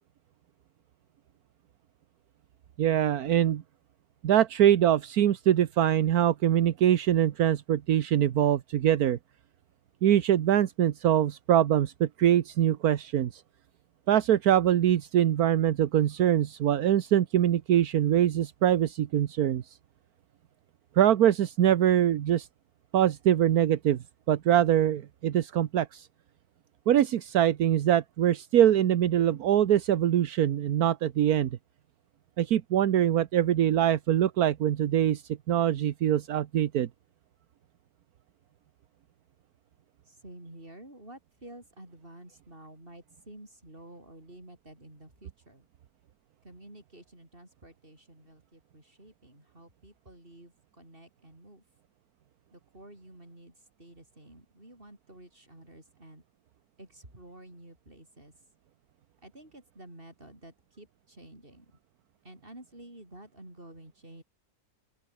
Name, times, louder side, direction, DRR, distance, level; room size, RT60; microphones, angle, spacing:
voice 1, 2.8-3.6 4.2-9.2 10.0-13.4 14.1-19.6 20.9-22.5 22.9-24.0 24.3-26.1 26.9-31.5 32.4-36.9, right 11 dB, 80° right, 1.4 m, -23 dB
voice 2, 40.1-45.7 46.4-51.6 52.5-56.2 56.8-58.3 59.2-61.7 62.2-64.2, right 1 dB, 35° right, 7.4 m, -51 dB
open air
omnidirectional pair, 1.6 m